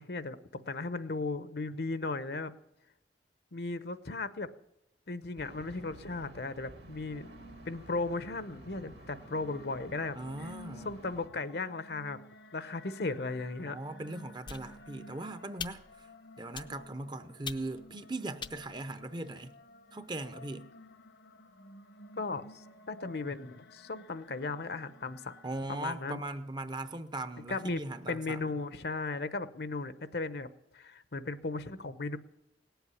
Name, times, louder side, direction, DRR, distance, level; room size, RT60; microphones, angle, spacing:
voice 1, 0.0-2.5 3.5-4.5 5.1-7.3 7.7-10.5 10.8-12.2 12.5-13.8 22.2-25.3 25.7-26.2 27.5-27.8 28.1-30.5 30.7-32.2, left 3 dB, 60° left, 0.8 m, -36 dB
sound 1, 5.4-11.3, right 1 dB, 65° right, 1.9 m, -52 dB
sound 2, 7.1-26.2, left 1 dB, 80° left, 1.3 m, -54 dB
voice 2, 10.2-10.9 13.6-15.8 16.4-19.5 19.9-20.7 25.4-28.5, right 2 dB, 25° right, 0.7 m, -39 dB
sound 3, 14.5-15.1 15.6-16.1 16.5-17.0 17.4-17.9 18.4-19.5, left 6 dB, 25° left, 0.5 m, -44 dB
18.0 x 8.1 x 9.8 m
head